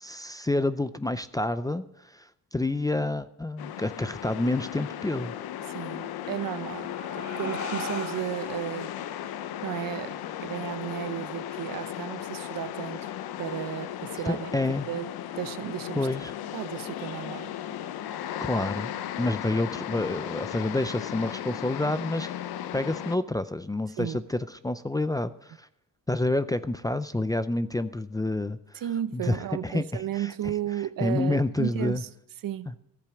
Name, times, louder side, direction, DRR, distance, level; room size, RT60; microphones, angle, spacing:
voice 1, 0.0-5.4 14.3-14.9 16.0-16.3 18.4-18.9 19.2-22.3 22.7-24.4 24.6-25.7 26.1-28.8 29.1-30.3 31.0-32.0, left 2 dB, 10° left, 0.4 m, -28 dB
sound 1, 3.6-23.2, left 11 dB, 90° left, 0.8 m, -36 dB
voice 2, 5.7-8.9 9.6-13.1 13.4-14.5 14.9-17.5 24.0-24.2 27.1-27.3 28.7-32.1 32.4-32.7, right 11 dB, 65° right, 0.7 m, -34 dB
sound 2, 6.3-11.3, left 2 dB, 50° left, 4.8 m, -41 dB
14.0 x 8.3 x 6.9 m
cardioid pair, 120°, 36 cm